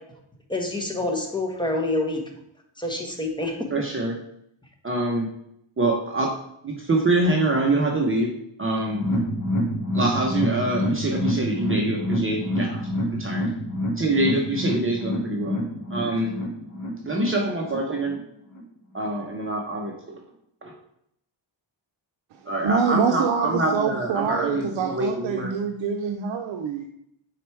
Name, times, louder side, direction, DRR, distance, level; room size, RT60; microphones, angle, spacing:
voice 1, 0.5-2.2 2.8-3.7, left 2 dB, 10° left, 2 dB, 1.2 m, -27 dB
voice 2, 3.7-4.2 4.8-5.3 5.8-6.3 6.6-8.3 8.6-9.1 9.9-12.8 13.1-13.5 14.0-15.6 15.9-16.4 17.1-18.2 18.9-20.2 20.6-20.7 22.5-25.5, right 2 dB, 25° right, 0 dB, 0.9 m, -25 dB
sound 1, 8.9-18.2 18.5-18.6 19.0-19.1, equal, 40° left, 1.5 m, -27 dB
voice 3, 22.6-26.8, right 6 dB, 75° right, 4 dB, 0.7 m, -25 dB
4.9 x 4.3 x 4.6 m, 0.74 s
cardioid pair, 105°, 47 cm